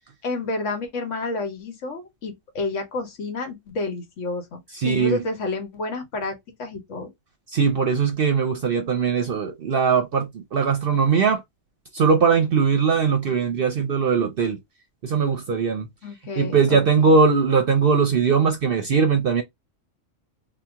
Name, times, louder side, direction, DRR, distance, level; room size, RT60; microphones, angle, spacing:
voice 1, 0.2-7.1 16.0-17.1, left 3 dB, 75° left, 1.2 m, -30 dB
voice 2, 4.7-5.2 7.5-11.4 11.9-14.6 15.0-15.9 16.4-19.4, right 5 dB, 60° right, 0.7 m, -20 dB
2.8 x 2.2 x 3.4 m
omnidirectional pair, 1.3 m